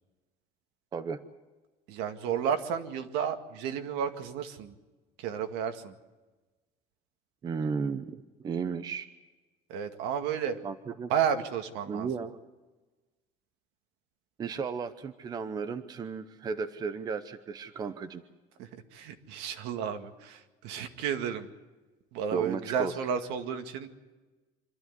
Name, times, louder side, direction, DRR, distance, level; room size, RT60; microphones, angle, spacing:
voice 1, 1.9-4.8 5.2-5.9 9.7-10.6 11.1-12.1 18.6-21.5 22.1-23.9, right 8 dB, 75° right, 7 dB, 2.1 m, -32 dB
voice 2, 7.4-9.1 10.6-11.1 11.9-12.4 14.4-18.2 22.3-22.9, right 5 dB, 20° right, 10 dB, 0.8 m, -34 dB
25.5 x 13.0 x 9.7 m, 1.2 s
cardioid pair, 175°, 18 cm